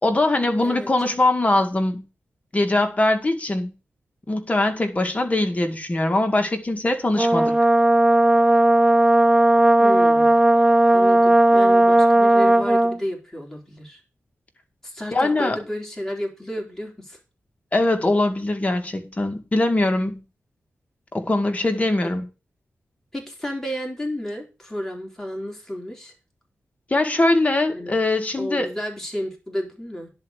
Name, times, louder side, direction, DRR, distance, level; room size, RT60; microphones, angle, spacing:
voice 1, 0.0-2.1 2.5-3.7 4.3-7.5 15.1-15.6 17.7-20.2 21.1-22.3 26.9-28.7, left 2 dB, 30° left, 1.9 m, -22 dB
Brass instrument, 7.2-13.0, right 1 dB, 15° right, 0.6 m, -16 dB
voice 2, 9.8-10.4 10.9-14.0 14.8-17.2 23.1-26.1 27.7-28.0 28.4-30.1, equal, 10° left, 3.9 m, -32 dB
10.5 x 4.6 x 7.9 m
wide cardioid pair, 85°, 5 cm